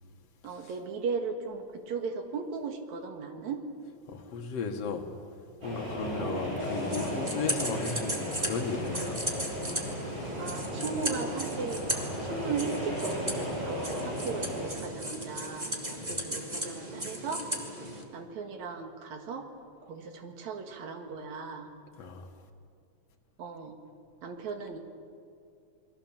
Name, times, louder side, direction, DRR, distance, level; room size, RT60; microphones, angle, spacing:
voice 1, 0.4-3.6 6.0-6.4 10.4-11.8 12.2-17.5 18.1-19.5 19.8-21.7 23.4-23.8 24.2-24.8, right 5 dB, 65° right, 5 dB, 3.1 m, -37 dB
voice 2, 4.1-5.1 5.6-9.2 16.0-16.2 22.0-22.3, left 5 dB, 55° left, 4 dB, 2.7 m, -35 dB
sound 1, 5.6-14.7, equal, 35° right, 7.9 m, -35 dB
sound 2, 6.6-18.0, right 1 dB, 15° right, 2.4 m, -36 dB
29.0 x 21.5 x 7.5 m, 2.5 s
omnidirectional pair, 3.5 m